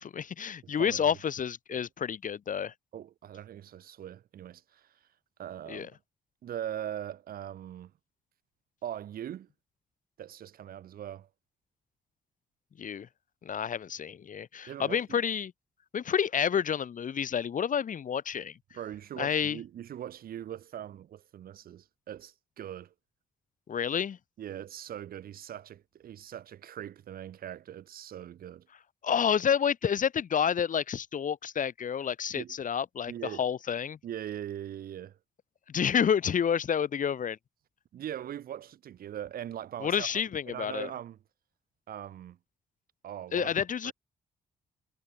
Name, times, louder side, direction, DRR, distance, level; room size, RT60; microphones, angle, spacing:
voice 1, 0.0-2.7 5.7-5.9 12.8-13.1 13.4-15.5 15.9-18.6 19.2-19.6 23.7-24.2 29.0-34.0 35.7-37.4 39.8-40.9 43.3-43.9, left 8 dB, 60° left, 2.6 m, -29 dB
voice 2, 0.6-1.2 1.7-1.8 2.9-4.9 5.4-5.9 6.4-7.9 8.8-9.5 10.2-11.3 14.7-15.2 18.7-22.9 24.4-28.7 32.3-32.5 33.1-33.4 34.0-35.2 37.9-41.2 41.9-42.4 43.0-43.9, right 10 dB, 70° right, 5.8 m, -41 dB
supercardioid pair, 55°, 16 cm